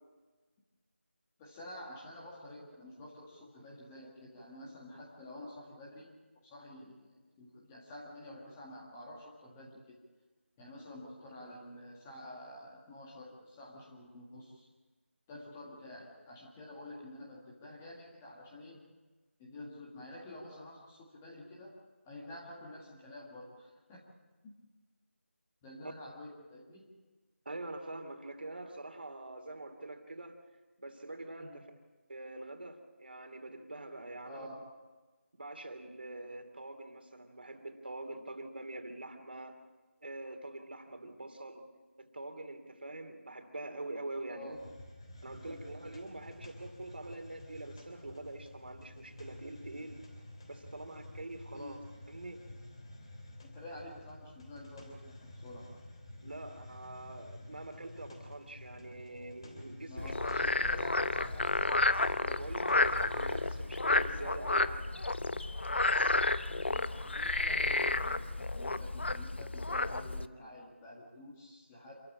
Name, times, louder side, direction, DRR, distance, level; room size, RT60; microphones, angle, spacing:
voice 1, 1.4-10.0 10.6-14.7 15.3-18.8 19.4-21.7 22.0-24.0 25.6-26.9 31.4-31.7 34.2-34.6 41.0-41.2 44.3-44.6 45.4-45.6 51.5-51.8 53.4-55.7 59.9-61.6 66.7-71.9, left 1 dB, 10° left, -3 dB, 1.8 m, -49 dB
voice 2, 27.4-30.4 30.8-31.7 32.1-34.5 35.4-39.6 40.0-41.6 42.0-44.6 45.2-50.0 50.5-51.8 52.1-52.4 56.2-60.4 62.2-64.9, right 2 dB, 50° right, 6 dB, 2.9 m, -45 dB
Hiss, 44.5-63.7, left 1 dB, 25° left, 3.1 m, -51 dB
Frog, 60.0-70.3, left 2 dB, 55° left, 0.9 m, -31 dB
27.0 x 14.0 x 8.6 m, 1.3 s
figure-of-eight pair, 175°, 7 cm